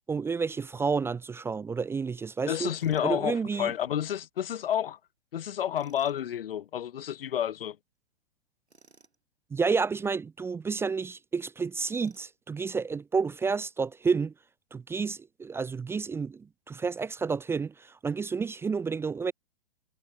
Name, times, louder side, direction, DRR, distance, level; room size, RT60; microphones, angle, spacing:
voice 1, 0.1-2.7 3.0-3.7 9.5-14.3 14.7-19.3, right 5 dB, 5° right, 0.8 m, -30 dB
voice 2, 2.5-5.0 5.3-7.8, left 10 dB, 60° left, 1.1 m, -30 dB
Tools, 2.8-3.1 5.7-6.2 8.7-9.2 11.8-12.4, right 3 dB, 85° right, 7.7 m, -59 dB
figure-of-eight pair, 120°, 32 cm